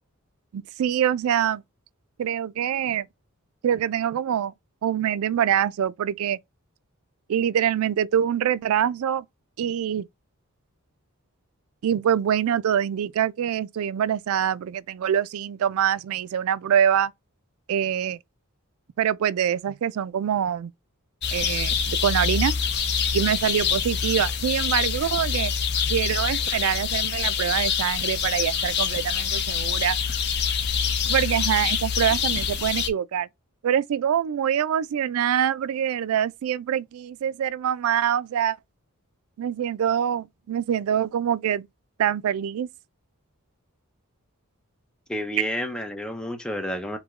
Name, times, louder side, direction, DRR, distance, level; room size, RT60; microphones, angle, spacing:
voice 1, 0.5-1.6 2.2-3.1 3.6-4.5 4.8-6.4 7.3-9.3 9.6-10.1 11.8-17.1 17.7-18.2 19.0-20.7 21.3-22.5 23.1-25.5 25.9-30.0 31.1-33.3 33.6-38.6 39.4-41.7 42.0-42.7, right 9 dB, 70° right, 0.3 m, -24 dB
sound 1, 21.2-32.9, left 7 dB, 50° left, 0.7 m, -25 dB
voice 2, 45.1-47.0, equal, 5° left, 0.5 m, -30 dB
4.8 x 2.1 x 3.5 m
head